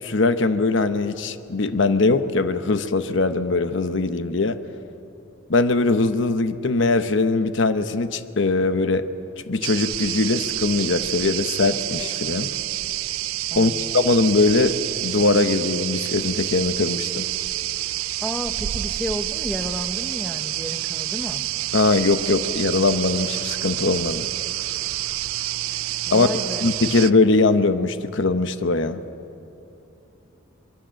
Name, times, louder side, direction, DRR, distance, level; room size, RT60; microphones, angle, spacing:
voice 1, 0.0-4.6 5.5-9.1 9.5-12.5 13.5-17.3 21.7-24.3 26.1-26.3 26.6-29.0, left 3 dB, 65° left, 11 dB, 0.9 m, -21 dB
sound 1, 9.6-27.1, right 15 dB, 85° right, 0.4 m, -28 dB
voice 2, 13.5-13.9 18.2-21.4 26.1-26.6, equal, 5° left, 8 dB, 0.9 m, -32 dB
23.5 x 22.5 x 7.6 m, 2.8 s
head